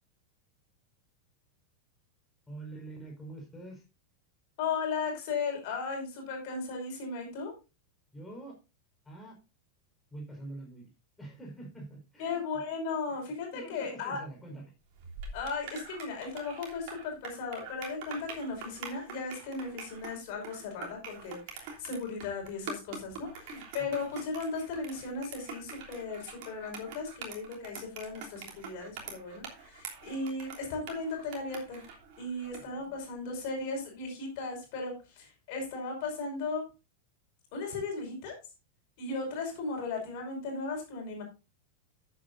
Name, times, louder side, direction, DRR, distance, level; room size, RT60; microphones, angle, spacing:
voice 1, 2.5-3.8 8.1-8.6 9.0-9.4 10.1-10.9 11.2-12.4 13.1-13.2 13.5-14.7 23.8-24.0 32.6-33.0, right 2 dB, 10° left, -2 dB, 4.9 m, -45 dB
voice 2, 4.6-7.5 12.2-14.2 15.3-31.9 32.2-36.6 37.5-38.4 39.0-41.2, left 4 dB, 45° left, 1 dB, 5.3 m, -36 dB
sound 1, 14.9-32.7, right 5 dB, 45° right, 3.1 m, -45 dB
14.0 x 8.8 x 2.6 m, 0.29 s
figure-of-eight pair, 90°, 0 cm